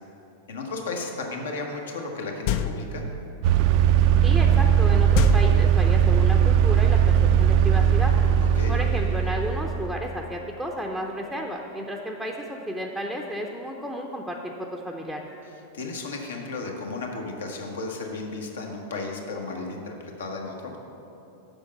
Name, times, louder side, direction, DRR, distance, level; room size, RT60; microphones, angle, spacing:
voice 1, 0.5-3.0 8.5-8.8 15.5-20.7, left 3 dB, 65° left, 1 dB, 1.3 m, -34 dB
sound 1, 2.5-3.1 5.1-6.2, left 6 dB, 45° left, 0.5 m, -26 dB
sound 2, 3.4-10.0, right 9 dB, 45° right, 0.4 m, -19 dB
voice 2, 4.2-8.1 8.7-15.3, equal, 5° left, 0 dB, 0.7 m, -32 dB
7.1 x 6.4 x 7.6 m, 2.9 s
figure-of-eight pair, 90°, 0 cm